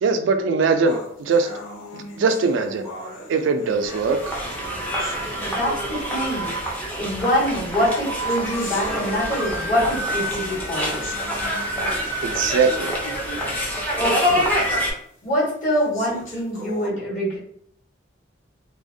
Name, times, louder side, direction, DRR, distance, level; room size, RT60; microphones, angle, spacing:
voice 1, 0.0-1.5 1.9-2.9 3.3-4.2 12.2-13.0, right 4 dB, 75° right, 7 dB, 0.3 m, -21 dB
sound 1, 0.9-6.0 6.9-7.0 7.7-13.0 13.4-13.5 14.1-14.2 14.8-14.9 15.7-16.9, left 1 dB, 90° left, 0.7 m, -39 dB
sound 2, 3.7-14.9, equal, 10° left, 0.5 m, -26 dB
voice 2, 5.4-6.5 7.0-11.1 14.0-14.5 15.2-17.4, equal, 40° left, -7 dB, 1.2 m, -24 dB
2.4 x 2.1 x 2.6 m, 0.65 s
head